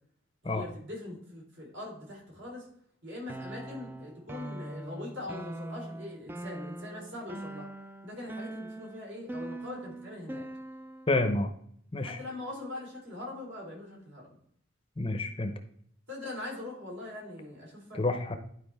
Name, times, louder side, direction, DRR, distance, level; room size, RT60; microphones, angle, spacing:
voice 1, 0.4-2.7 3.0-7.7 8.0-10.5 12.0-14.3 16.1-18.0, left 1 dB, 70° right, -3 dB, 3.5 m, -42 dB
sound 1, 3.3-11.2, right 1 dB, 10° right, 0.3 m, -42 dB
voice 2, 11.1-11.5 11.9-12.2 15.0-15.5 17.9-18.4, left 2 dB, 30° left, 7 dB, 0.7 m, -28 dB
11.0 x 4.8 x 3.4 m, 0.64 s
head